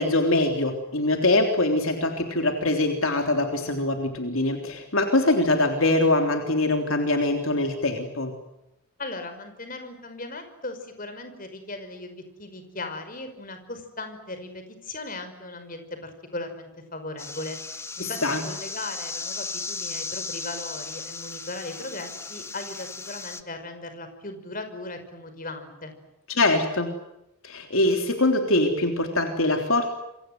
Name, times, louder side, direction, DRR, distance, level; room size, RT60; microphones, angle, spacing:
voice 1, 0.0-8.3 18.0-18.4 26.3-26.9 27.4-29.9, left 2 dB, 65° left, 4 dB, 3.5 m, -23 dB
voice 2, 9.0-18.2 18.4-25.9, left 2 dB, 40° left, 8 dB, 5.4 m, -38 dB
sound 1, 17.2-23.4, left 4 dB, 10° left, 1.3 m, -36 dB
28.5 x 25.0 x 7.9 m, 0.90 s
head